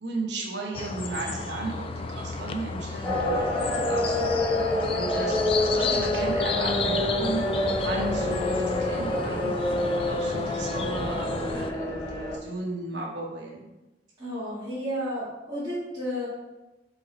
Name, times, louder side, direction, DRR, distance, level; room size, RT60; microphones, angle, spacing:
voice 1, 0.0-4.3 4.9-7.4 7.8-9.6 10.1-13.7, right 2 dB, 75° right, -1 dB, 1.0 m, -35 dB
sound 1, 0.7-11.7, left 4 dB, 30° left, 0.3 m, -33 dB
sound 2, 3.0-12.4, left 1 dB, 15° left, 2.0 m, -27 dB
voice 2, 14.2-16.3, equal, 20° right, -13 dB, 2.1 m, -32 dB
5.2 x 4.2 x 4.3 m, 1.0 s
head